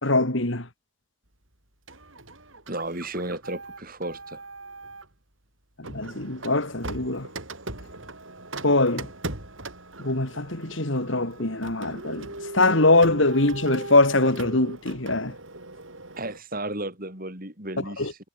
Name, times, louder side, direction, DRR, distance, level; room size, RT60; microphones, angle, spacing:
voice 1, 0.0-0.7 5.8-7.3 8.6-9.1 10.0-12.3 12.5-15.3 18.0-18.1, left 2 dB, 60° left, 3.0 m, -22 dB
Printer, 1.9-5.1 5.8-16.4, right 2 dB, 65° right, 7.1 m, -39 dB
voice 2, 2.7-4.4 16.2-18.2, right 1 dB, 40° right, 6.3 m, -33 dB
head